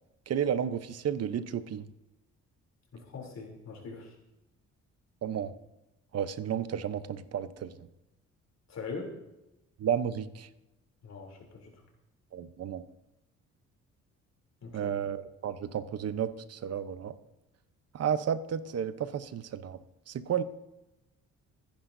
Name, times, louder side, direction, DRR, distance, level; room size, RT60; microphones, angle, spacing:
voice 1, 0.3-1.9 5.2-5.5 6.1-7.9 9.8-10.5 12.3-12.9 14.7-17.2 17.9-19.8 20.1-20.4, right 8 dB, 55° right, 12 dB, 0.9 m, -32 dB
voice 2, 2.9-4.2 8.7-9.1 11.0-11.7 14.6-14.9, left 4 dB, 60° left, 1 dB, 3.3 m, -42 dB
25.0 x 10.5 x 2.7 m, 0.96 s
cardioid pair, 90°, 30 cm